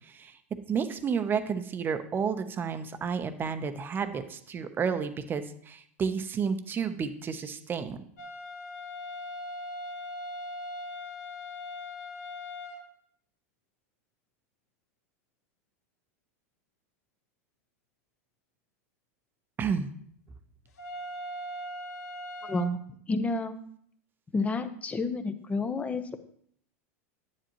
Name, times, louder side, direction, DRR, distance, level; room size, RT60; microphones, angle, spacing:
voice 1, 0.7-8.0 19.6-19.9, right 6 dB, 25° right, 10 dB, 0.9 m, -31 dB
sound 1, 8.2-12.8 20.8-22.7, left 1 dB, 90° left, 1.9 m, -39 dB
voice 2, 22.4-22.8 23.1-23.5 24.3-26.2, left 2 dB, 15° left, 9 dB, 0.9 m, -30 dB
10.5 x 9.9 x 3.1 m, 0.65 s
hypercardioid pair, 120°, 8 cm